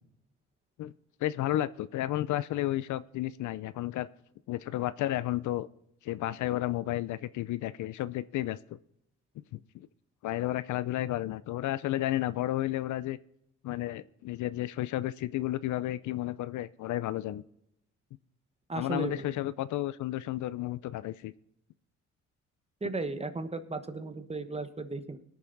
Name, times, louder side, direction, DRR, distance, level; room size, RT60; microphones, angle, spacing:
voice 1, 1.2-4.1 4.5-5.7 6.0-8.8 9.7-9.9 10.2-13.2 13.6-17.4 18.7-21.3, left 14 dB, 75° left, 17 dB, 0.5 m, -32 dB
voice 2, 18.7-19.3 22.8-25.2, right 2 dB, 20° right, 9 dB, 1.2 m, -35 dB
20.5 x 7.0 x 3.9 m, 0.78 s
cardioid pair, 90°, 30 cm